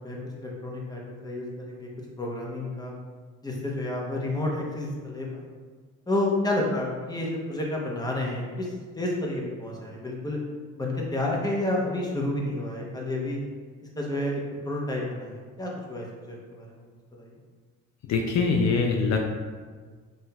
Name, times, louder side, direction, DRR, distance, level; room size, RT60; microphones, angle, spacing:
voice 1, 0.0-1.9 2.2-2.9 3.4-5.5 6.1-10.4 10.7-13.4 14.0-16.8 17.1-17.3, left 1 dB, 15° left, -2 dB, 0.8 m, -30 dB
voice 2, 18.1-19.3, left 4 dB, 65° left, 2 dB, 0.5 m, -23 dB
5.8 x 2.5 x 2.3 m, 1.5 s
cardioid pair, 90°, 30 cm